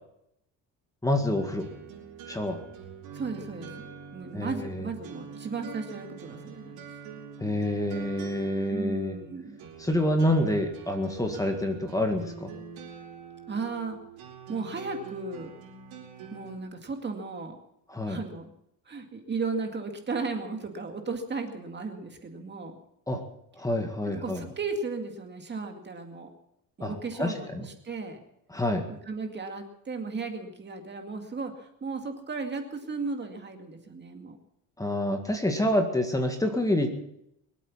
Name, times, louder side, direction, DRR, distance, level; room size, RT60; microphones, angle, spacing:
voice 1, 1.0-1.7 2.3-2.6 4.3-4.9 7.4-9.2 9.8-12.5 17.9-18.2 23.1-23.2 23.6-24.4 26.8-27.6 28.5-28.9 34.8-36.9, left 1 dB, 10° left, 4 dB, 1.9 m, -27 dB
sound 1, 1.4-16.6, right 6 dB, 90° right, 4.7 m, -45 dB
voice 2, 3.1-6.8 8.7-9.6 13.5-14.0 14.5-15.5 16.3-17.6 18.1-18.5 18.9-22.8 24.0-26.3 26.8-28.2 29.1-34.4, right 4 dB, 30° right, 5 dB, 2.2 m, -35 dB
23.5 x 8.4 x 7.3 m, 0.78 s
cardioid pair, 130°, 37 cm